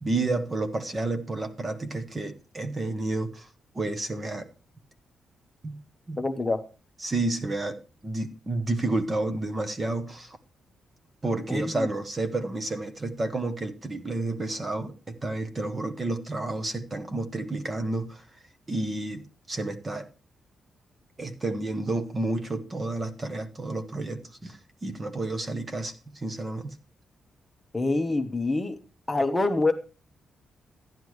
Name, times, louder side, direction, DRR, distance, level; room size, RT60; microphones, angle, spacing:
voice 1, 0.0-3.5 3.7-4.5 5.6-5.8 6.1-6.2 7.0-10.4 11.2-18.2 18.7-19.2 19.5-20.1 21.2-26.7, right 2 dB, 20° right, 1.1 m, -30 dB
voice 2, 6.2-6.6 11.5-11.9 27.7-28.8 29.1-29.7, left 2 dB, 15° left, 1.0 m, -26 dB
12.5 x 10.5 x 3.2 m
wide cardioid pair, 170°, 0 cm